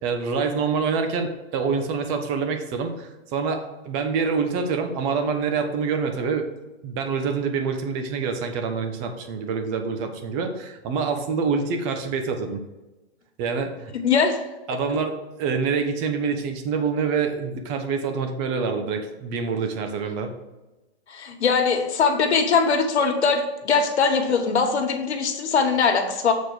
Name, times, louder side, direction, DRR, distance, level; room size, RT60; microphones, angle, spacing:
voice 1, 0.0-6.4 6.8-12.6 13.4-13.9 14.7-20.3, right 5 dB, 40° right, 6 dB, 1.3 m, -26 dB
voice 2, 14.0-14.4 21.1-26.3, left 5 dB, 90° left, 4 dB, 1.5 m, -21 dB
7.3 x 4.2 x 6.3 m, 1.1 s
hypercardioid pair, 135°, 32 cm